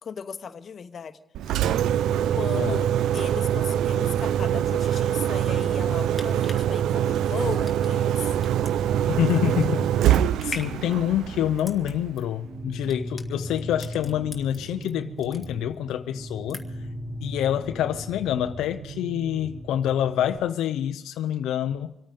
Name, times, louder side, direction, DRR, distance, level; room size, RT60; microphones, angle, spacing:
voice 1, 0.0-1.2 1.5-1.7 2.3-8.4, left 6 dB, 50° left, 1.1 m, -37 dB
Engine, 1.3-12.3, right 10 dB, 80° right, 0.5 m, -24 dB
sound 1, 6.1-14.9 15.2-15.9 16.2-16.9 17.3-17.4, left 2 dB, 15° left, 1.9 m, -42 dB
voice 2, 9.1-9.9 10.4-16.6 17.2-21.9, left 11 dB, 85° left, 0.6 m, -26 dB
sound 2, 12.4-20.4, equal, 50° right, 2.5 m, -38 dB
26.0 x 9.0 x 5.2 m
cardioid pair, 90°, 0 cm